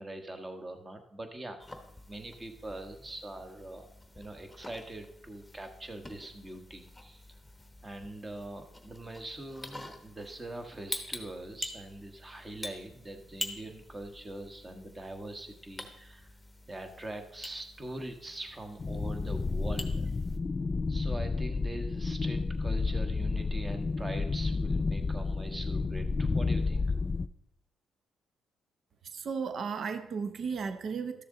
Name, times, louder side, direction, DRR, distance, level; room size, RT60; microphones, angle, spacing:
voice 1, 0.0-1.8 2.1-3.9 4.1-7.2 7.8-16.3 16.7-20.1 20.9-26.9, right 1 dB, 25° right, 1.3 m, -43 dB
sound 1, 1.6-20.4, left 1 dB, 5° left, 1.1 m, -46 dB
sound 2, 18.8-27.3, left 4 dB, 30° left, 0.3 m, -31 dB
voice 2, 29.1-31.2, right 5 dB, 55° right, 0.7 m, -34 dB
12.5 x 6.8 x 3.9 m
cardioid pair, 90°, 0 cm